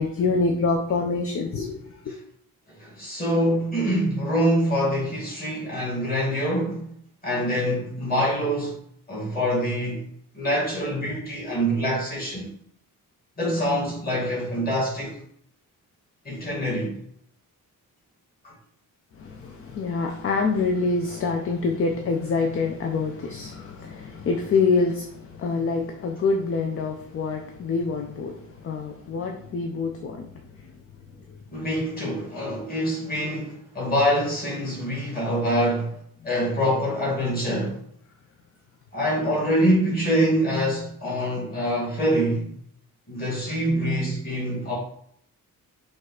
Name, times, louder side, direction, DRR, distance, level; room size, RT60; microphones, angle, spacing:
voice 1, 0.0-2.1 19.2-30.3 30.6-30.7, left 4 dB, 40° left, 0.4 m, -26 dB
voice 2, 2.7-6.9 7.2-8.8 9.1-10.0 10.3-12.5 13.4-15.2 16.3-16.9 18.4-18.5 31.5-35.9 36.2-37.8 38.9-42.5 43.1-44.7, equal, 25° left, 1.9 m, -25 dB
5.2 x 2.4 x 4.1 m
wide cardioid pair, 175°, 34 cm